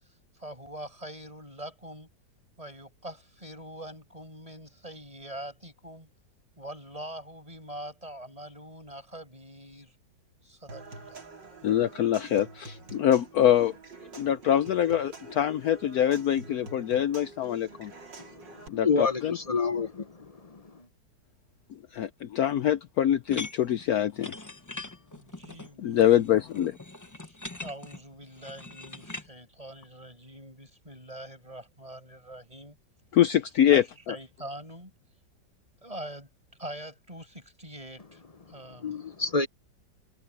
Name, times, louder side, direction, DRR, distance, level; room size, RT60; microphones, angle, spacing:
voice 1, 0.3-2.1 2.6-6.1 6.6-9.9 10.4-11.3 25.0-26.0 27.2-32.8 33.7-34.9 35.8-36.3 36.6-38.2 38.5-39.0, right 1 dB, 20° right, 6.4 m, -43 dB
Human voice / Acoustic guitar / Percussion, 10.7-18.7, right 3 dB, 80° right, 4.3 m, -47 dB
voice 2, 11.6-13.8 14.1-17.9 18.7-19.4 21.7-24.3 25.8-26.8 33.1-34.2, left 10 dB, 65° left, 1.0 m, -24 dB
voice 3, 18.8-20.0 38.8-39.5, left 4 dB, 40° left, 0.5 m, -27 dB
sound 1, 23.3-29.3, left 2 dB, 15° left, 0.9 m, -42 dB
omnidirectional pair, 1.9 m